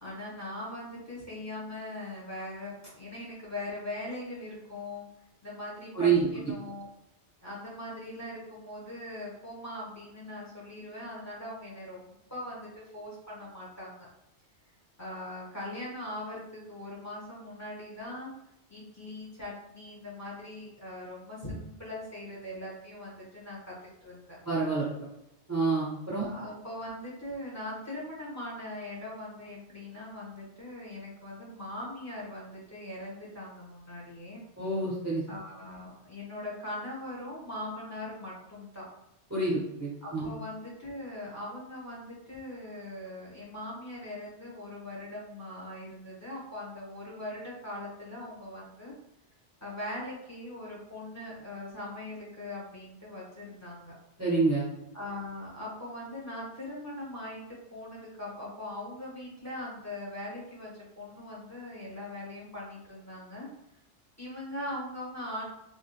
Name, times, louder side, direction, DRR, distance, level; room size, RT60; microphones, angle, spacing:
voice 1, 0.0-5.0 5.4-6.9 7.4-14.1 15.0-18.3 18.7-23.7 24.0-24.4 26.2-34.4 35.3-38.9 40.0-48.9 49.6-53.9 54.9-63.5 64.2-65.4, left 1 dB, 15° left, -6 dB, 1.3 m, -41 dB
voice 2, 5.9-6.3 24.4-24.9 25.5-26.3 34.6-35.2 39.3-40.3 54.2-54.7, right 4 dB, 15° right, -7 dB, 0.9 m, -27 dB
3.7 x 3.1 x 2.4 m, 0.84 s
omnidirectional pair, 1.2 m